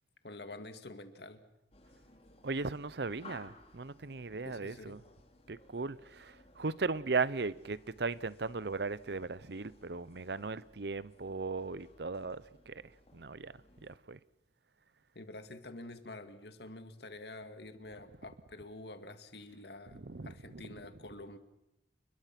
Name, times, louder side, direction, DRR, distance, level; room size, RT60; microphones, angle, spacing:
voice 1, 0.2-1.4 4.4-5.0 15.1-21.4, left 2 dB, 65° left, 2.2 m, -48 dB
sound 1, 1.7-14.0, left 2 dB, 35° left, 3.0 m, -60 dB
voice 2, 2.4-5.0 5.5-12.8 13.1-13.5 13.8-14.2 19.9-20.6, right 4 dB, 65° right, 0.8 m, -37 dB
29.5 x 22.0 x 6.0 m
head